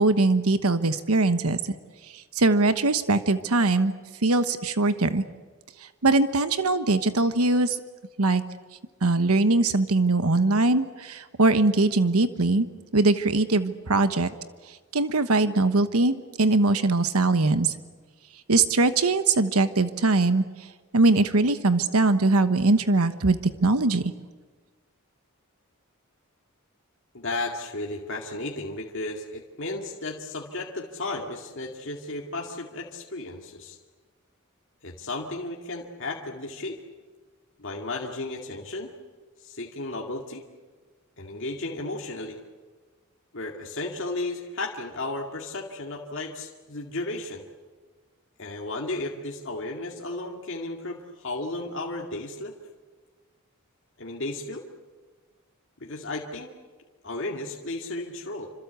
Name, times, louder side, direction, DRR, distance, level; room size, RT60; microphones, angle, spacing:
voice 1, 0.0-1.6 2.1-3.9 4.2-5.2 5.8-7.8 8.2-8.4 9.0-12.7 12.9-14.3 14.7-17.7 18.5-20.7 20.9-24.0, right 2 dB, 85° right, 11 dB, 1.2 m, -22 dB
voice 2, 27.1-33.8 34.8-36.8 37.6-38.9 39.4-40.4 41.2-42.4 43.3-47.4 48.4-52.5 54.0-54.6 55.8-56.5 57.0-58.5, left 2 dB, 60° left, 0 dB, 2.3 m, -34 dB
27.0 x 26.0 x 8.2 m, 1.4 s
head